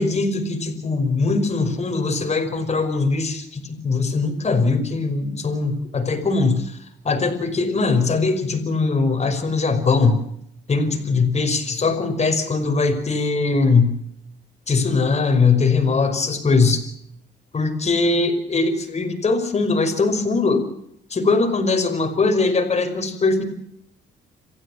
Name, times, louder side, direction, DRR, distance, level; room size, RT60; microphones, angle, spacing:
voice 1, 0.0-6.8 7.0-10.2 10.7-14.0 14.7-16.8 17.5-20.7 21.1-23.4, left 4 dB, 35° left, 6 dB, 5.6 m, -21 dB
27.5 x 15.5 x 7.4 m, 0.73 s
cardioid pair, 90°, 19 cm